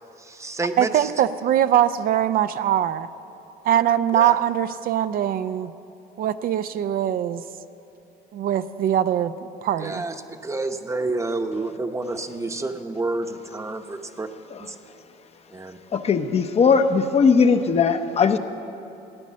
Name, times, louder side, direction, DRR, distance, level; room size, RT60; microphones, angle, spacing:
voice 1, 0.2-1.1 4.1-4.4 9.8-14.3 14.6-14.8 15.5-15.8, right 2 dB, 15° right, 7 dB, 0.8 m, -29 dB
voice 2, 0.8-3.1 3.6-5.7 6.2-7.4 8.3-9.3 9.6-10.0, right 10 dB, 60° right, 12 dB, 0.5 m, -22 dB
voice 3, 15.9-18.4, left 5 dB, 40° left, 8 dB, 0.7 m, -18 dB
15.0 x 9.8 x 7.4 m, 2.8 s
cardioid pair, 110°, 17 cm